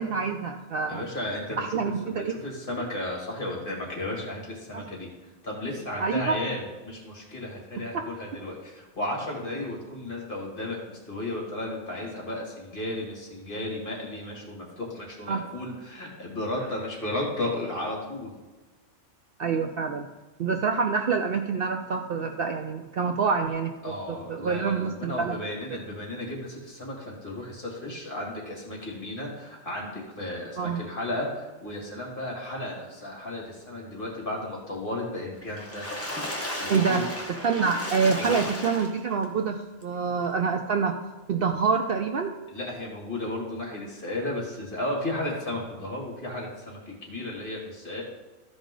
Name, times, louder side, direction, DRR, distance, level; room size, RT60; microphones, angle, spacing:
voice 1, 0.0-1.1 1.6-2.4 4.7-4.9 6.0-6.4 7.9-8.0 15.3-15.4 19.4-20.1 20.4-25.4 30.6-30.8 36.7-37.0 37.4-41.0 41.3-42.3, right 5 dB, 60° right, 5 dB, 0.7 m, -26 dB
voice 2, 0.9-18.3 23.8-37.0 37.3-37.5 38.2-38.5 42.5-48.0, left 1 dB, 45° left, -2 dB, 2.6 m, -34 dB
Water / Splash splatter, 35.4-39.3 39.8-39.9 40.2-40.3, left 1 dB, 10° left, 1.0 m, -34 dB
14.0 x 5.1 x 3.8 m, 1.2 s
omnidirectional pair, 1.3 m